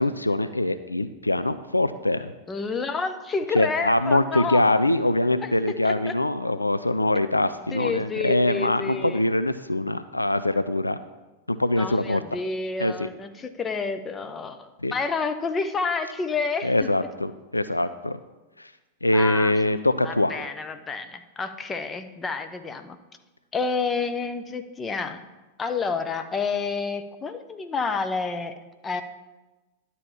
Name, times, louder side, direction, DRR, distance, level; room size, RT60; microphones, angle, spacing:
voice 1, 0.0-2.3 3.5-11.0 11.5-12.2 12.8-13.1 14.8-14.9 16.6-18.2 18.6-18.7 19.0-20.4, left 1 dB, 85° left, 12 dB, 0.3 m, -23 dB
voice 2, 2.5-4.8 5.4-5.5 5.8-6.1 7.7-9.2 11.8-16.9 19.1-19.5 20.0-23.0 23.5-25.2 25.6-28.5 28.8-29.0, left 4 dB, 20° left, 8 dB, 0.8 m, -29 dB
11.0 x 4.2 x 7.1 m, 1.1 s
figure-of-eight pair, 90°, 0 cm